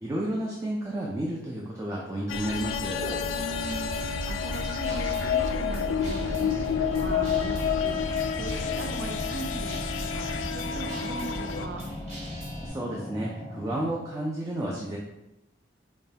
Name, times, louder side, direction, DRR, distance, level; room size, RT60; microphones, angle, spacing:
voice 1, 0.0-3.1 12.6-15.0, right 1 dB, 15° right, -3 dB, 0.4 m, -31 dB
sound 1, 2.3-11.7, left 6 dB, 85° left, 0.3 m, -29 dB
Guitar, 3.0-12.7, equal, 40° right, 1.0 m, -40 dB
voice 2, 3.3-9.8 10.1-11.8, right 2 dB, 80° right, 3 dB, 0.5 m, -39 dB
sound 2, 6.2-13.9, left 1 dB, 15° left, 0.7 m, -40 dB
5.0 x 2.2 x 2.8 m, 0.92 s
head